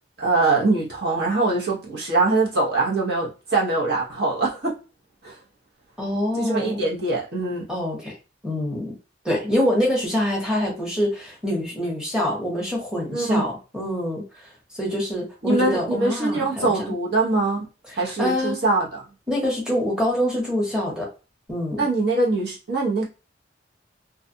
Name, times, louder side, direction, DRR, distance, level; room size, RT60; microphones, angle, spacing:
voice 1, 0.2-4.7 5.2-5.3 6.3-7.7 13.1-13.4 15.4-17.7 18.0-19.0 21.8-23.0, right 3 dB, 60° right, -3 dB, 0.9 m, -23 dB
voice 2, 6.0-6.8 7.7-8.2 8.4-8.9 9.2-14.5 14.7-16.9 17.9-18.6 19.3-21.1 21.5-21.8, left 1 dB, 5° right, -3 dB, 0.9 m, -25 dB
2.4 x 2.3 x 2.7 m, 0.32 s
head